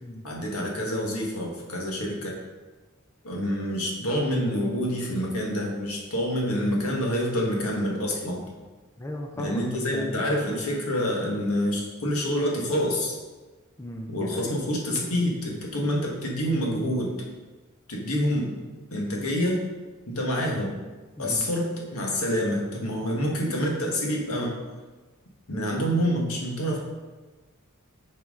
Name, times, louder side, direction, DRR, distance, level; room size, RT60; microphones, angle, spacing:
voice 1, 0.2-2.3 3.2-8.4 9.4-13.1 14.1-17.2 17.9-18.5 18.9-19.6 20.1-20.7 21.2-24.6 25.5-26.8, equal, 75° left, -1 dB, 1.6 m, -27 dB
voice 2, 9.0-9.6 9.9-10.3 13.8-14.5 21.2-21.5, left 1 dB, 15° left, 0 dB, 0.6 m, -36 dB
8.6 x 4.7 x 3.7 m, 1.3 s
head